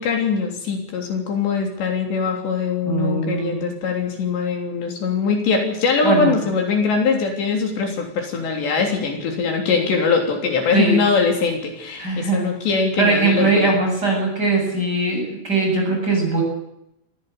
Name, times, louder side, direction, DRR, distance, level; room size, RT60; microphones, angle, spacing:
voice 1, 0.0-13.7, left 5 dB, 70° left, 3 dB, 5.5 m, -22 dB
voice 2, 2.8-3.6 6.0-6.3 10.7-11.0 12.0-12.5 13.0-16.4, right 3 dB, 20° right, 1 dB, 8.3 m, -20 dB
23.5 x 15.5 x 8.4 m, 0.81 s
omnidirectional pair, 5.2 m